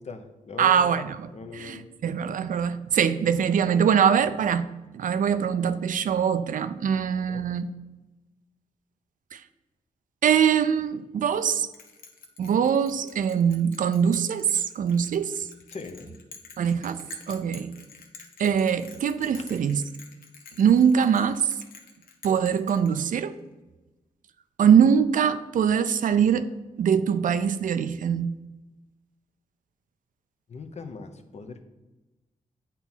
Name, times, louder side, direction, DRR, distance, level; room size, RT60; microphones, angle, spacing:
voice 1, 0.0-1.1 1.3-1.9 6.9-7.4 15.7-16.1 17.3-17.4 19.4-19.5 30.5-31.6, left 4 dB, 50° left, 7 dB, 0.8 m, -41 dB
voice 2, 0.6-4.7 4.9-7.7 9.3-9.4 10.2-11.7 12.4-15.3 16.6-17.0 17.3-17.7 18.4-19.8 20.6-21.4 22.2-23.3 24.6-26.5 26.8-28.3, right 7 dB, 65° right, 12 dB, 0.4 m, -23 dB
Bell, 11.7-23.4, left 5 dB, 90° left, 0.9 m, -49 dB
8.3 x 3.0 x 5.6 m, 1.1 s
cardioid pair, 60°, 14 cm